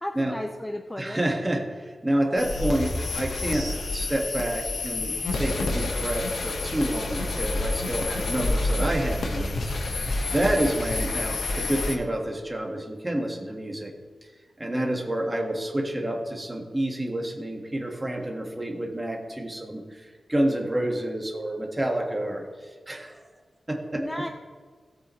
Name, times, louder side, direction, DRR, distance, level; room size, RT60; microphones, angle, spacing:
voice 1, 0.0-1.2 23.9-24.3, left 1 dB, 10° left, 5 dB, 0.5 m, -33 dB
voice 2, 1.0-13.9 14.6-23.2 23.7-24.2, right 1 dB, 15° right, 1 dB, 1.7 m, -29 dB
sound 1, 2.4-12.0, left 2 dB, 75° left, 1.4 m, -28 dB
17.5 x 8.2 x 3.2 m, 1.6 s
wide cardioid pair, 110°, 0 cm